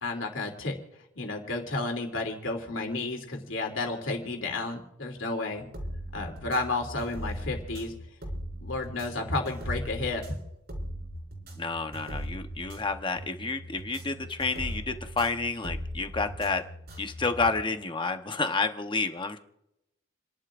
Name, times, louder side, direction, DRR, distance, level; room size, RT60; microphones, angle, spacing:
voice 1, 0.0-0.7 1.1-5.7 6.1-7.9 8.6-10.2, left 2 dB, 70° left, 2 dB, 3.0 m, -32 dB
sound 1, 5.6-17.6, equal, 55° right, 4.4 m, -39 dB
voice 2, 11.6-16.6 17.0-19.4, left 3 dB, 25° left, 7 dB, 0.9 m, -30 dB
30.0 x 11.5 x 2.5 m, 0.85 s
head